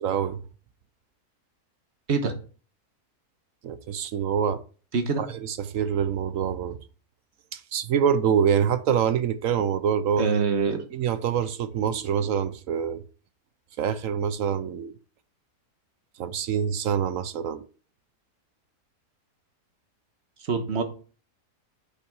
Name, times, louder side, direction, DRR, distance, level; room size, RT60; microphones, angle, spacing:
voice 1, 0.0-0.4 3.6-4.6 5.2-6.8 7.5-10.3 10.9-13.0 13.8-14.9 16.2-17.6, right 8 dB, 65° right, 1.0 m, -25 dB
voice 2, 10.2-10.8 20.5-20.8, right 5 dB, 45° right, 1.4 m, -24 dB
8.3 x 5.7 x 4.8 m
omnidirectional pair, 1.7 m